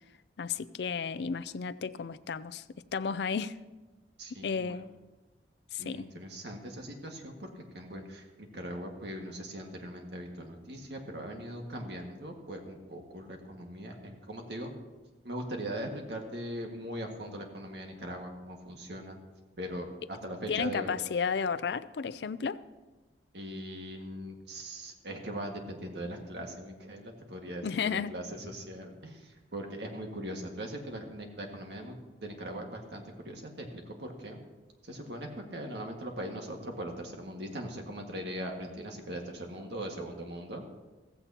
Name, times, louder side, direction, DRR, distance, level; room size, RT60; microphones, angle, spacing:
voice 1, 0.4-2.6 2.9-3.5 4.4-4.9 5.7-6.0 20.5-22.6 27.6-28.1, left 6 dB, 70° left, 15 dB, 0.4 m, -32 dB
voice 2, 4.2-4.7 5.8-14.7 15.2-19.2 19.6-20.9 23.3-32.0 32.2-34.4 34.8-40.6, right 1 dB, 70° right, 2 dB, 1.8 m, -40 dB
15.5 x 15.0 x 2.9 m, 1.2 s
head